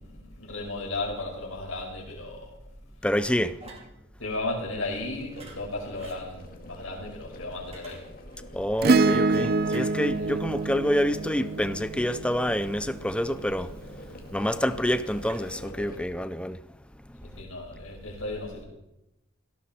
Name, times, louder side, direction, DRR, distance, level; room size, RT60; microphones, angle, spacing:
voice 1, 0.0-2.5 4.2-8.1 10.2-10.4 17.2-18.6, left 2 dB, 75° left, 5.5 m, -35 dB
voice 2, 3.0-3.6 8.5-16.6, equal, 5° left, 0.6 m, -27 dB
sound 1, 3.6-3.9 5.3-5.6 6.0-6.2 7.5-8.4 9.6-9.8, right 2 dB, 30° right, 2.9 m, -47 dB
sound 2, 4.8-16.0, left 1 dB, 45° left, 2.1 m, -47 dB
Acoustic guitar / Strum, 8.8-13.4 15.3-15.4, right 3 dB, 45° right, 0.5 m, -26 dB
18.5 x 16.0 x 4.4 m
head